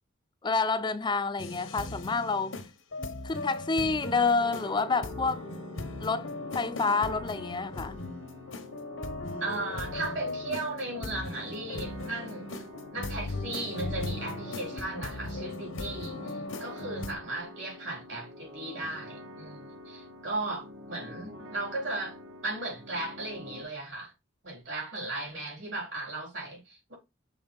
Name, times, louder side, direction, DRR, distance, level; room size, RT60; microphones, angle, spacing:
voice 1, 0.4-2.5 3.2-5.4 6.0-8.0, left 4 dB, 25° left, 0.4 m, -28 dB
sound 1, 1.4-17.1, left 2 dB, 90° left, 1.2 m, -38 dB
sound 2, 4.4-23.6, left 1 dB, 85° right, 2.5 m, -46 dB
voice 2, 9.4-12.6 12.9-22.2 22.4-24.1 24.4-26.9, right 2 dB, 70° right, 4.7 m, -36 dB
7.0 x 3.8 x 3.9 m
head